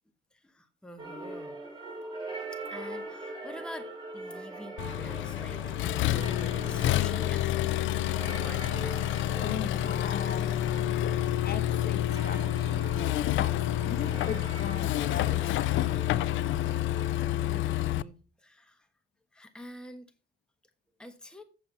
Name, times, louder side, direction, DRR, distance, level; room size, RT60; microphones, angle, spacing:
voice 1, 0.3-1.6 2.5-9.0 17.4-18.9 19.3-20.1 21.0-21.4, left 1 dB, 5° left, 7 dB, 1.3 m, -47 dB
sound 1, 1.0-17.8, right 2 dB, 20° right, 5.1 m, -43 dB
Accelerating revving vroom, 4.8-18.0, left 13 dB, 75° left, 0.4 m, -28 dB
voice 2, 9.4-10.6 11.0-11.1 11.4-12.9 13.4-13.5 13.8-15.7, left 7 dB, 50° left, 9 dB, 1.6 m, -38 dB
7.8 x 7.2 x 5.7 m, 0.38 s
cardioid pair, 90°, 20 cm